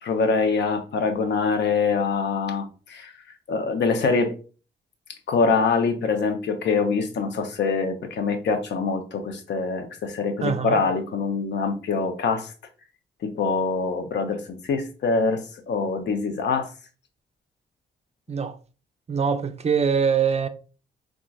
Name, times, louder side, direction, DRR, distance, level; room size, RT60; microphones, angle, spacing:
voice 1, 0.0-3.1 3.5-4.3 5.3-12.5 13.2-16.7, left 4 dB, 65° left, 0.7 m, -24 dB
voice 2, 10.4-10.8 18.3-18.6 19.1-20.5, right 6 dB, 35° right, 0.5 m, -23 dB
3.9 x 2.4 x 2.3 m
supercardioid pair, 55°, 19 cm